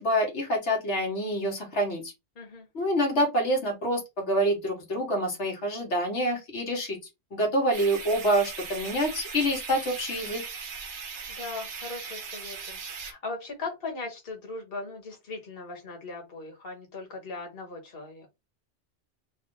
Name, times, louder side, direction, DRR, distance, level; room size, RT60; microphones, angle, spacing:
voice 1, 0.0-2.1 2.7-7.0 7.3-10.4, equal, 85° left, 0 dB, 1.6 m, -27 dB
voice 2, 2.3-2.7 11.3-18.4, left 3 dB, 60° left, 2 dB, 1.4 m, -39 dB
sound 1, 7.7-13.1, right 5 dB, 85° right, 1.1 m, -39 dB
3.4 x 2.4 x 3.8 m, 0.22 s
omnidirectional pair, 1.1 m